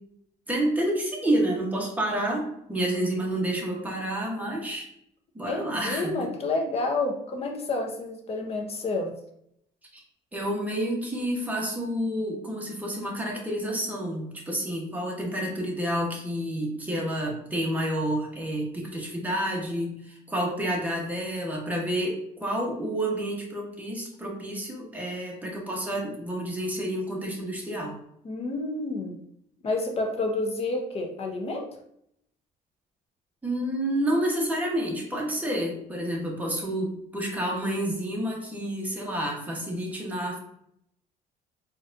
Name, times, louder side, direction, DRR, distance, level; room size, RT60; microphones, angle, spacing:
voice 1, 0.5-4.9 5.3-6.3 9.9-10.0 10.3-27.9 33.4-40.4, right 1 dB, 10° right, -2 dB, 1.0 m, -29 dB
voice 2, 5.4-9.1 28.2-29.2 29.6-31.6, left 2 dB, 35° left, 2 dB, 0.7 m, -29 dB
3.9 x 2.5 x 2.5 m, 0.73 s
cardioid pair, 110°, 17 cm